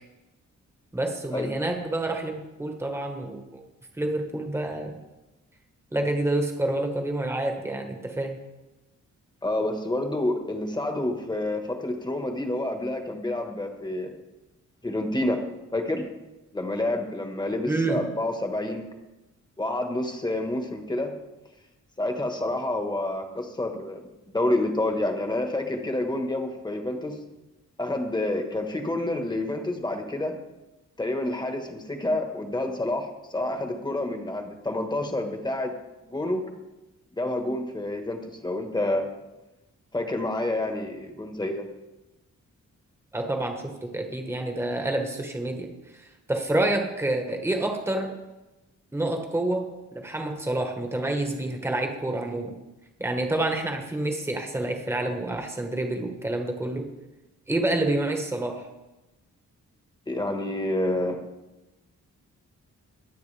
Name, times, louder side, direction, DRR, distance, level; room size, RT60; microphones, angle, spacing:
voice 1, 0.9-3.6 3.9-5.0 5.9-8.4 17.7-18.0 43.1-48.1 48.9-49.7 49.9-52.5 53.0-56.9 57.5-58.7, right 2 dB, 10° right, 3 dB, 1.3 m, -28 dB
voice 2, 9.4-14.1 14.8-15.4 15.7-16.0 16.5-18.8 19.6-21.1 22.0-24.1 24.3-27.1 27.8-30.4 31.0-35.7 36.0-36.4 37.2-39.1 39.9-41.7 60.1-61.2, left 1 dB, 15° left, 4 dB, 1.4 m, -28 dB
24.0 x 8.3 x 3.4 m, 1.0 s
wide cardioid pair, 165°, 30 cm